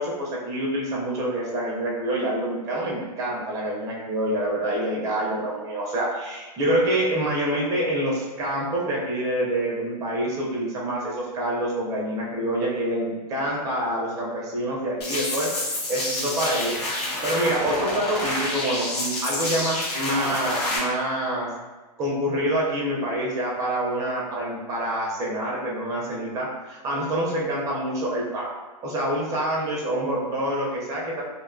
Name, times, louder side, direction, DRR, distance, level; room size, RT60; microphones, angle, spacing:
voice 1, 0.0-15.5 15.8-21.5 22.0-28.5 28.8-31.2, right 1 dB, 15° right, -4 dB, 0.4 m, -26 dB
sound 1, 15.0-20.8, left 1 dB, 70° left, 0.9 m, -28 dB
2.5 x 2.2 x 2.4 m, 1.2 s
hypercardioid pair, 145°, 21 cm